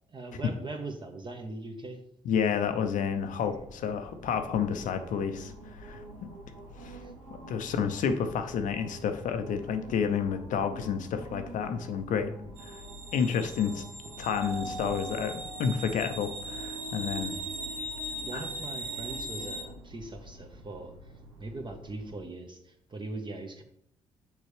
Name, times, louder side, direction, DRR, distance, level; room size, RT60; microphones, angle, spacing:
voice 1, 0.1-2.0 3.3-3.7 4.8-4.9 7.0-7.1 7.6-7.7 12.1-12.5 14.8-14.9 17.2-17.4 18.2-20.9 21.4-23.6, right 2 dB, 30° right, 5 dB, 1.3 m, -41 dB
voice 2, 2.2-6.0 6.8-7.0 7.4-12.3 12.6-12.8 13.1-13.8 14.2-15.3 15.6-17.4 18.3-18.5, left 7 dB, 60° left, 8 dB, 0.6 m, -30 dB
sound 1, 2.6-22.2, right 1 dB, 90° right, 0.8 m, -46 dB
sound 2, 12.6-19.6, right 1 dB, 70° right, 1.2 m, -40 dB
Keyboard (musical), 14.4-16.6, right 1 dB, 5° right, 1.9 m, -43 dB
6.4 x 5.5 x 3.3 m, 0.71 s
hypercardioid pair, 45°, 15 cm